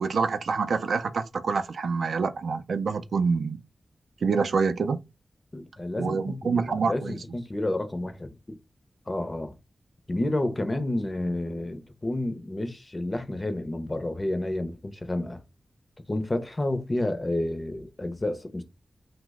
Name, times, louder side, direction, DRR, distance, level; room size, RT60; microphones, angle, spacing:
voice 1, 0.0-3.6 4.2-5.0 6.0-7.2, right 5 dB, 85° right, 0.3 m, -26 dB
voice 2, 5.5-8.6 9.1-9.6 10.1-15.4 16.1-18.6, left 1 dB, 25° left, 0.5 m, -30 dB
2.8 x 2.0 x 3.4 m
wide cardioid pair, 130°, 0 cm